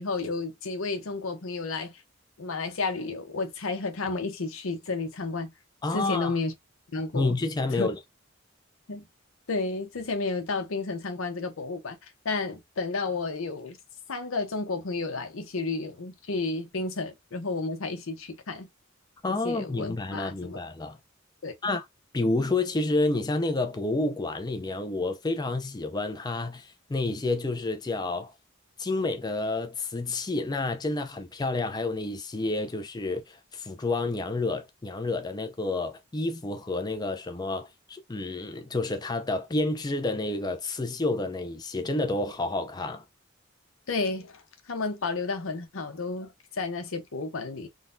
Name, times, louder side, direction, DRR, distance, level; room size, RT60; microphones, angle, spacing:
voice 1, 0.0-2.0 2.4-5.5 5.9-6.5 6.9-7.4 7.7-7.9 8.9-9.0 9.5-13.8 14.1-18.7 19.4-20.6 21.4-21.5 43.9-47.7, left 3 dB, 85° left, 0.8 m, -32 dB
voice 2, 5.8-6.3 7.1-8.0 19.2-21.0 21.6-21.8 22.1-28.3 28.8-43.0, left 2 dB, 20° left, 0.4 m, -29 dB
3.8 x 2.3 x 2.5 m
head